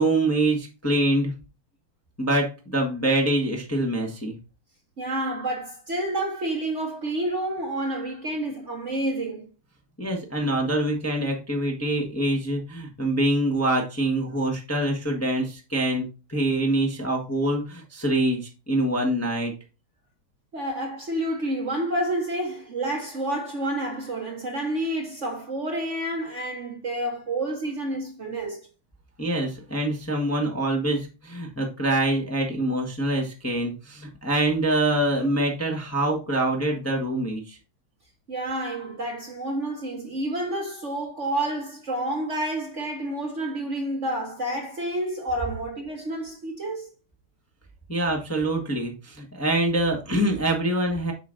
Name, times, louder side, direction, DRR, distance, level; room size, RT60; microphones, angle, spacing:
voice 1, 0.0-1.3 2.2-4.3 10.0-16.0 16.3-19.5 29.2-37.6 47.9-51.1, right 1 dB, 10° left, 1.1 m, -25 dB
voice 2, 5.0-9.5 20.5-28.6 38.3-46.9, right 1 dB, 40° right, 1.3 m, -29 dB
8.0 x 5.9 x 2.6 m
omnidirectional pair, 2.2 m